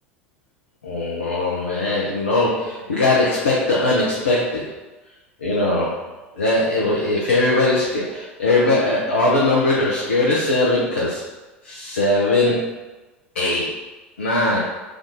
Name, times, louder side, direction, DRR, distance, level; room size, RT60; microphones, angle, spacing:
voice 1, 0.8-4.7 5.4-6.1 6.3-11.2 11.6-12.7 13.3-13.7 14.2-14.6, left 2 dB, 80° left, -6 dB, 0.6 m, -20 dB
3.6 x 2.5 x 3.6 m, 1.2 s
figure-of-eight pair, 75°, 6 cm